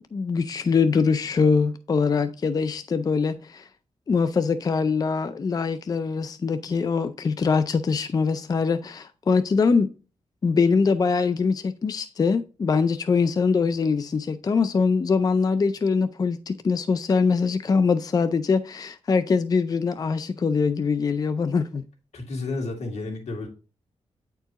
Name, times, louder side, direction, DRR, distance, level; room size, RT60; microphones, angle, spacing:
voice 1, 0.1-3.7 4.1-9.9 10.4-21.8, left 5 dB, 35° left, 0.4 m, -23 dB
voice 2, 22.1-23.5, left 3 dB, 85° left, 2.1 m, -31 dB
9.2 x 4.5 x 2.9 m
wide cardioid pair, 120°, 11 cm